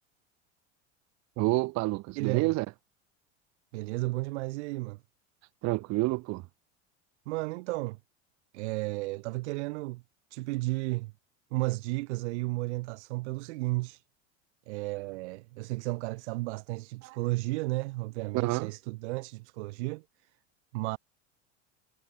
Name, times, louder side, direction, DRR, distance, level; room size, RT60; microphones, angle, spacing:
voice 1, 1.4-2.7 5.6-6.4 17.0-17.2 18.3-18.7, right 22 dB, 50° right, 0.9 m, -28 dB
voice 2, 2.1-2.5 3.7-5.0 7.2-8.0 8.5-10.0 10.3-11.1 11.5-14.0 14.7-20.0 20.7-21.0, right 22 dB, 75° right, 1.7 m, -33 dB
supercardioid pair, 100°, 35 cm